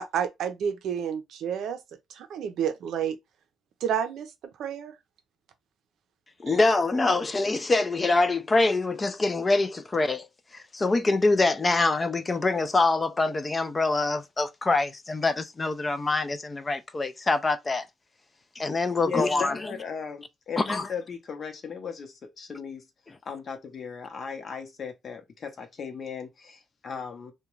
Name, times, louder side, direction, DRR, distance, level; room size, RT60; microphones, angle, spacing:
voice 1, 0.0-1.8 2.1-3.2 3.8-5.0, right 8 dB, 75° right, 0.5 m, -30 dB
voice 2, 6.4-10.3 10.5-17.8 18.6-19.6 20.6-20.9, left 3 dB, 25° left, 0.4 m, -25 dB
voice 3, 19.0-22.9 23.2-27.3, left 6 dB, 50° left, 0.7 m, -37 dB
2.3 x 2.2 x 3.0 m
cardioid pair, 90°, 0 cm